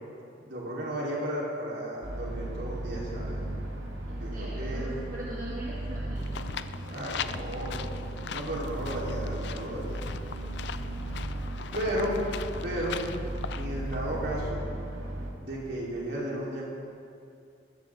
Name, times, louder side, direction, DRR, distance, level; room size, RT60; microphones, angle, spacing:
voice 1, 0.4-3.4 4.1-4.9 6.8-7.9 8.3-10.0 11.7-12.2 12.6-13.0 13.5-14.7 15.4-16.6, equal, 60° right, -5 dB, 4.2 m, -34 dB
sound 1, 2.0-15.3, right 1 dB, 80° right, 2.2 m, -36 dB
voice 2, 4.1-6.5, right 1 dB, 40° right, -5 dB, 1.7 m, -41 dB
sound 2, 6.2-14.5, left 7 dB, 65° left, 0.4 m, -40 dB
20.0 x 15.5 x 3.9 m, 2.5 s
head